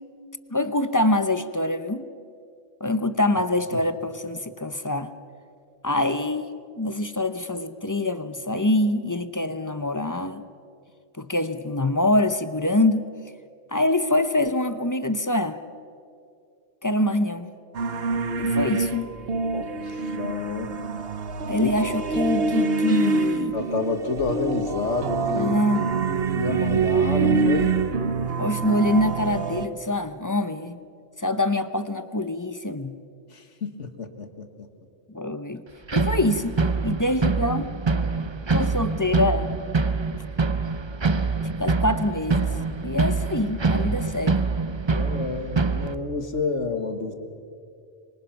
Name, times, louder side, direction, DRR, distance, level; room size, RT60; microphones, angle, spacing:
voice 1, 0.5-2.0 2.8-5.1 5.8-10.4 11.2-13.0 13.7-15.6 16.8-17.5 18.4-19.1 21.5-23.6 25.3-25.8 28.4-30.8 31.2-32.9 35.1-35.6 35.9-36.6 36.8-37.7 38.5-39.5 41.6-42.5 42.8-44.4, left 1 dB, 20° left, 11 dB, 0.6 m, -24 dB
sound 1, 17.7-29.7, right 4 dB, 55° right, 1.2 m, -25 dB
voice 2, 19.5-20.8 21.6-21.7 23.5-25.6 26.3-27.8 33.3-34.7 44.9-47.1, left 4 dB, 75° left, 7 dB, 2.0 m, -29 dB
sound 2, 35.9-45.9, right 4 dB, 30° right, 0.6 m, -25 dB
26.0 x 24.0 x 5.8 m, 2.4 s
omnidirectional pair, 1.2 m